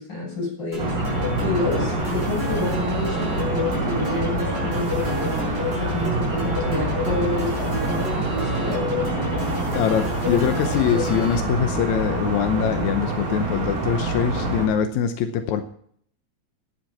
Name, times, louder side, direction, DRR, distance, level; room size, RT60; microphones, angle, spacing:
voice 1, 0.0-5.5 5.7-8.9, left 2 dB, 30° left, 0 dB, 8.0 m, -29 dB
sound 1, 0.7-11.4, left 3 dB, 15° right, 6.5 m, -31 dB
sound 2, 0.8-14.7, right 2 dB, 90° right, 6.0 m, -26 dB
voice 2, 9.7-15.6, left 8 dB, 75° left, 7 dB, 1.8 m, -23 dB
11.5 x 10.5 x 5.9 m, 0.62 s
omnidirectional pair, 4.3 m